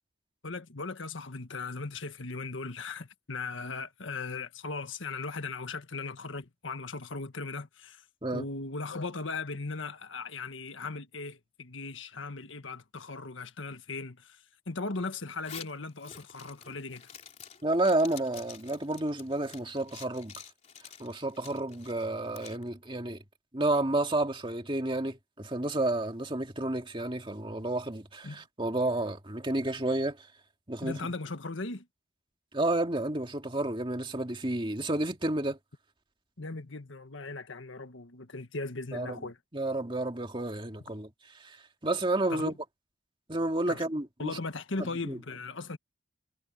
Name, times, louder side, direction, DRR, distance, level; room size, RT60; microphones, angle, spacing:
voice 1, 0.4-8.0 8.3-17.1 28.2-28.4 30.8-31.9 36.4-39.4 42.3-42.5 43.7-43.8 44.2-45.8, left 3 dB, 75° left, 1.5 m, -38 dB
Zipper (clothing), 15.3-22.6, left 7 dB, 35° left, 3.7 m, -49 dB
voice 2, 17.6-20.4 21.0-23.2 23.5-30.3 30.7-31.0 32.5-35.6 38.9-39.2 39.5-41.1 41.4-42.5 43.3-44.4 44.8-45.2, right 2 dB, 25° right, 2.2 m, -31 dB
head